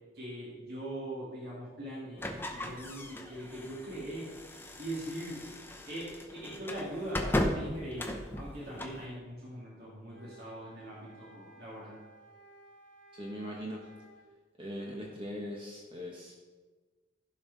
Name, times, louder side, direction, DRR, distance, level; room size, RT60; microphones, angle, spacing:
voice 1, 0.1-4.3 4.8-5.4 5.9-12.0, right 1 dB, 55° right, -6 dB, 2.6 m, -41 dB
sound 1, 2.2-9.0, left 1 dB, 10° left, 0.7 m, -37 dB
sound 2, 10.1-14.3, right 1 dB, 90° right, 1.2 m, -57 dB
voice 2, 13.1-13.9 14.6-16.3, equal, 25° right, -3 dB, 1.3 m, -40 dB
15.5 x 5.6 x 4.1 m, 1.3 s
head